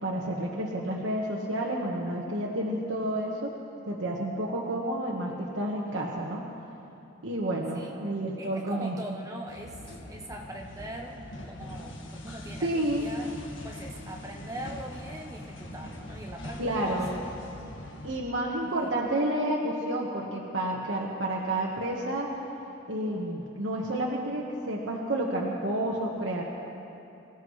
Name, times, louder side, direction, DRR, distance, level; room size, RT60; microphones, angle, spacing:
voice 1, 0.0-3.5 3.9-6.4 7.2-8.9 12.6-13.0 16.6-17.1 17.6-17.7 18.0-22.3 22.9-26.4, right 1 dB, 70° right, -3 dB, 1.3 m, -30 dB
voice 2, 7.7-8.0 8.4-9.8 10.1-11.2 11.5-13.3 13.6-17.3 17.7-17.8 18.6-18.9, right 1 dB, 15° right, 0 dB, 0.8 m, -42 dB
sound 1, 9.5-18.2, left 1 dB, 70° left, 1.7 m, -42 dB
25.5 x 15.5 x 3.2 m, 2.9 s
head